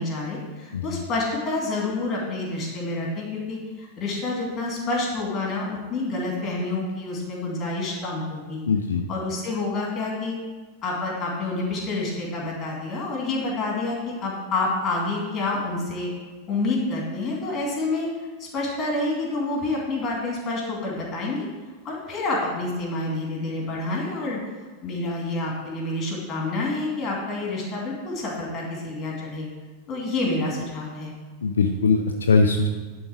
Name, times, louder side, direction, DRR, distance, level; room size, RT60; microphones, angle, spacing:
voice 1, 0.0-8.6 9.1-10.4 10.8-16.1 16.5-18.1 18.4-21.5 21.8-24.4 24.8-29.5 29.9-31.1, left 2 dB, 25° left, -2 dB, 2.5 m, -28 dB
voice 2, 0.7-1.0 8.7-9.0 31.4-32.7, left 4 dB, 70° left, 4 dB, 0.5 m, -21 dB
11.0 x 3.9 x 4.9 m, 1.3 s
figure-of-eight pair, 90°, 0 cm